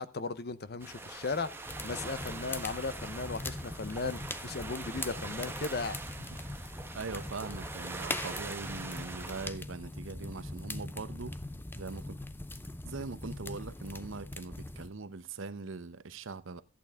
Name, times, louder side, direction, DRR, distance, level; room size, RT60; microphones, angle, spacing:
voice 1, 0.0-1.5 1.8-6.0, left 4 dB, 55° left, 0.8 m, -36 dB
sound 1, 0.8-9.5, right 3 dB, 10° right, 1.0 m, -43 dB
sound 2, 1.6-14.9, left 2 dB, 10° left, 0.6 m, -41 dB
voice 2, 6.6-11.4 11.7-12.2 12.8-16.6, right 4 dB, 80° right, 0.8 m, -41 dB
14.0 x 8.6 x 3.6 m
head